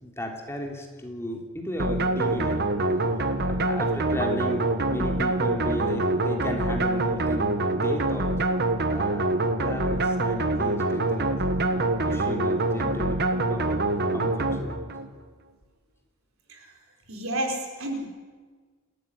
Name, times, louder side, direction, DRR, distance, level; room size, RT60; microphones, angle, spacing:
voice 1, 0.0-3.0 3.2-8.3 8.9-11.4 11.7-14.8, left 1 dB, 10° left, 1 dB, 3.2 m, -35 dB
sound 1, 1.8-15.1, right 2 dB, 50° right, 1.5 m, -25 dB
voice 2, 17.1-18.1, right 1 dB, 65° right, 2 dB, 5.0 m, -30 dB
29.0 x 13.5 x 9.8 m, 1.5 s
head